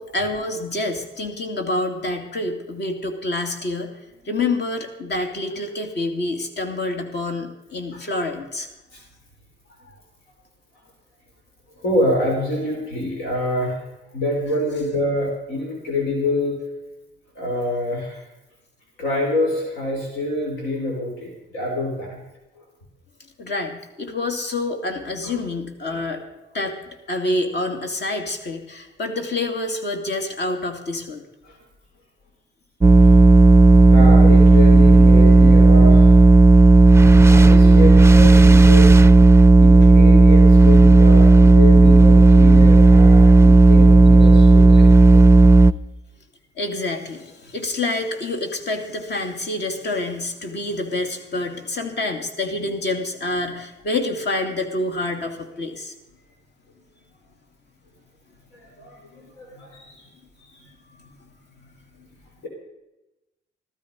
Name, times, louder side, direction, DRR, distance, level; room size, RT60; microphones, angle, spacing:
voice 1, 0.0-3.9 4.3-8.7 23.4-26.2 26.5-26.8 27.1-31.2 44.3-44.5 44.7-44.8 46.6-55.9, left 2 dB, 60° left, 5 dB, 2.6 m, -27 dB
voice 2, 11.8-13.8 14.1-16.6 17.4-18.2 19.0-22.2 25.2-25.4 25.9-26.0 31.4-31.5 33.9-36.1 37.3-38.9 39.6-44.9 45.1-45.2 58.5-59.0 59.4-60.0, left 1 dB, 90° left, -1 dB, 4.0 m, -26 dB
sound 1, 32.8-45.7, right 3 dB, 15° right, 0.5 m, -10 dB
14.5 x 13.5 x 5.3 m, 0.98 s
cardioid pair, 90°, 20 cm